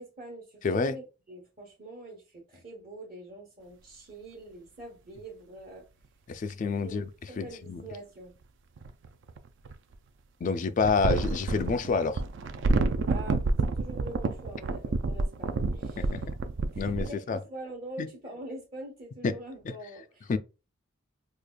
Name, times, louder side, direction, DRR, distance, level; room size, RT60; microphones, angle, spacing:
voice 1, 0.0-5.8 6.8-7.0 7.3-8.3 13.1-16.2 16.7-20.4, right 2 dB, 45° right, 1.0 m, -44 dB
voice 2, 0.6-1.0 6.3-7.1 7.4-7.8 10.4-12.2 16.0-16.2 16.8-17.4 18.0-18.1 19.2-19.4 20.3-20.4, left 4 dB, 40° left, 0.3 m, -28 dB
sound 1, 6.5-6.6 8.8-9.9 10.8-17.1, right 3 dB, 60° right, 0.4 m, -29 dB
4.9 x 2.4 x 2.2 m
head